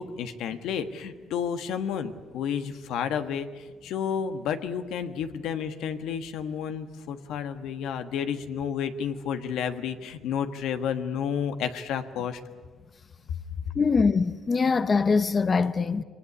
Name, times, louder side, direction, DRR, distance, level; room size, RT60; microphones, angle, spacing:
voice 1, 0.0-12.4, left 7 dB, 85° left, 1.4 m, -31 dB
voice 2, 13.8-16.0, left 4 dB, 35° left, 0.8 m, -23 dB
23.5 x 19.0 x 9.8 m
cardioid pair, 85°, 0 cm